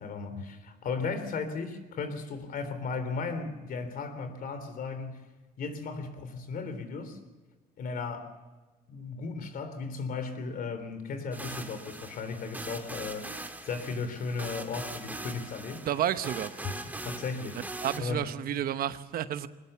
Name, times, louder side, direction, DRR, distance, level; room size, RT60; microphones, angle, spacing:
voice 1, 0.0-5.2 5.6-7.2 7.8-8.3 8.9-13.3 13.6-15.8 16.6-16.7 17.0-17.6 18.0-18.3, left 4 dB, 60° left, 10 dB, 3.5 m, -35 dB
sound 1, 11.3-18.0, right 2 dB, 10° right, 2.1 m, -41 dB
voice 2, 15.9-16.5 17.8-19.5, right 11 dB, 60° right, 12 dB, 1.0 m, -30 dB
22.0 x 20.0 x 7.1 m, 1.2 s
cardioid pair, 110°, 17 cm